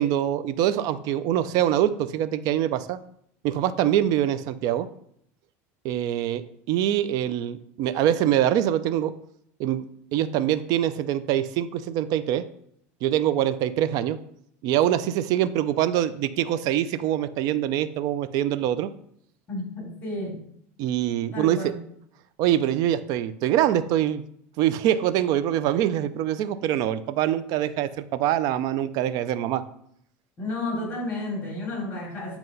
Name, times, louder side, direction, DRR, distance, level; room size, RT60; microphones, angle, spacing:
voice 1, 0.0-3.0 3.4-4.9 5.8-9.1 9.6-9.9 10.1-12.4 13.0-14.2 14.6-18.9 20.8-21.7 22.4-24.2 24.6-29.6, right 11 dB, 55° right, 13 dB, 0.5 m, -24 dB
voice 2, 19.5-20.4 21.3-21.8 30.4-32.4, left 2 dB, 25° left, -1 dB, 3.0 m, -31 dB
7.8 x 2.9 x 5.4 m, 0.70 s
supercardioid pair, 125°, 8 cm